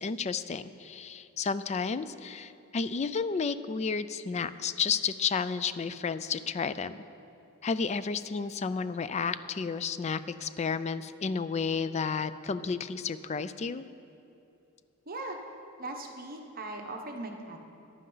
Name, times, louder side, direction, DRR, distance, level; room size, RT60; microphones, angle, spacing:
voice 1, 0.0-7.0 7.6-13.8, left 5 dB, 30° left, 14 dB, 0.3 m, -32 dB
voice 2, 15.1-15.4 15.8-17.6, right 2 dB, 45° right, 3 dB, 1.0 m, -39 dB
14.5 x 10.5 x 3.9 m, 2.7 s
head